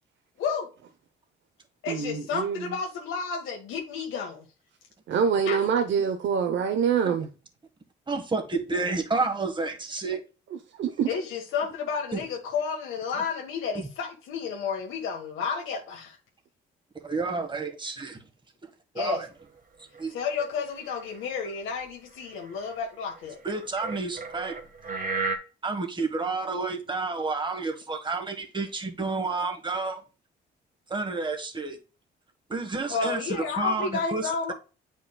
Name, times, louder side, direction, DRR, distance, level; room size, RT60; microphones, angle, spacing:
voice 1, 0.4-0.7 1.8-4.4 5.5-5.6 11.1-16.2 18.9-19.2 20.1-23.4 32.9-34.5, left 5 dB, 85° left, 1.5 m, -31 dB
voice 2, 1.9-2.7 5.1-7.3 10.5-11.1, right 7 dB, 70° right, 0.8 m, -25 dB
voice 3, 8.1-10.2 12.1-12.2 13.7-13.9 17.0-18.2 18.9-19.3 20.0-20.1 23.4-24.6 25.6-30.0 30.9-31.8 32.5-34.5, right 3 dB, 25° right, 1.5 m, -30 dB
sound 1, 19.4-19.5 20.0-20.1 20.9-21.8 22.4-22.7 23.5-25.4, right 3 dB, 40° right, 1.4 m, -33 dB
8.6 x 5.2 x 2.3 m
cardioid pair, 90°, 20 cm